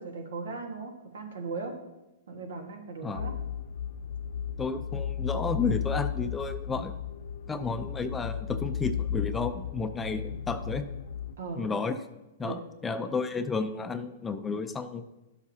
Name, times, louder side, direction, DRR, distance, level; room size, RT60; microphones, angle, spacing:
voice 1, 0.0-1.8 2.3-3.3 11.4-11.7 12.4-12.6, right 4 dB, 85° right, 4 dB, 1.5 m, -38 dB
sound 1, 3.2-11.4, left 8 dB, 70° left, 0.4 m, -34 dB
voice 2, 4.6-6.9 7.5-10.8 11.6-12.0 12.4-15.0, left 4 dB, 15° left, 8 dB, 0.5 m, -32 dB
11.5 x 7.2 x 2.8 m, 0.98 s
hypercardioid pair, 140°, 0 cm